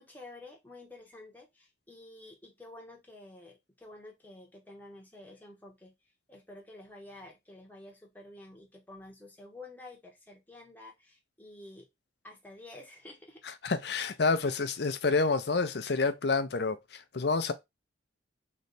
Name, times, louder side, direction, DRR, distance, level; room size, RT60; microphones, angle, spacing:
voice 1, 0.0-5.9 6.3-11.9 12.2-13.5 14.4-14.6, left 2 dB, 10° left, 1.0 m, -50 dB
voice 2, 13.4-17.5, left 4 dB, 55° left, 0.5 m, -29 dB
3.2 x 3.1 x 4.0 m
head